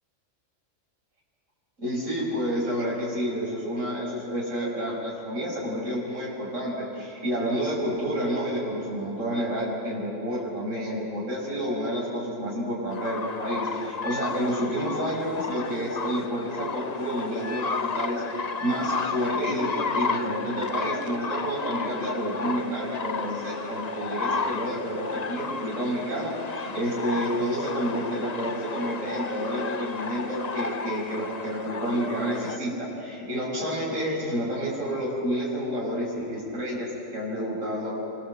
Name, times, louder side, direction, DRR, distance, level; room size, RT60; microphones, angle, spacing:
voice 1, 1.8-18.2 18.6-37.9, equal, 85° right, -5 dB, 6.2 m, -29 dB
sound 1, 12.9-32.6, left 4 dB, 35° left, 0.9 m, -33 dB
28.0 x 24.0 x 7.7 m, 2.6 s
omnidirectional pair, 1.3 m